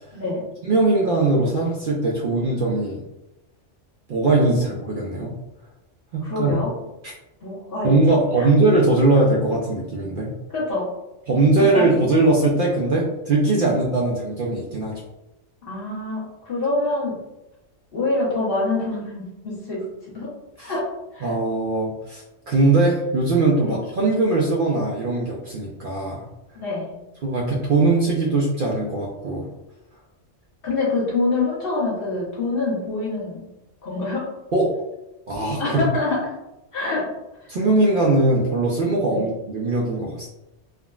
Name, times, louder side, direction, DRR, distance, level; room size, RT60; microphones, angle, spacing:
voice 1, 0.1-0.4 6.2-6.7 7.4-7.9 8.4-8.5 10.5-10.9 11.6-12.0 13.6-13.8 15.6-17.2 17.9-19.9 20.1-20.3 20.6-21.3 23.6-23.8 26.5-27.0 30.6-33.5 33.8-34.3 35.6-36.3 36.7-37.1 37.4-37.5 39.1-39.3, left 2 dB, 55° left, -5 dB, 1.1 m, -26 dB
voice 2, 0.6-3.0 4.1-5.3 6.1-6.6 7.8-10.3 11.3-15.0 20.6-20.7 21.2-26.2 27.2-29.5 34.5-34.7 35.3-35.9 37.5-40.3, right 2 dB, 60° right, -3 dB, 0.6 m, -20 dB
3.5 x 2.1 x 2.3 m, 0.95 s
omnidirectional pair, 1.2 m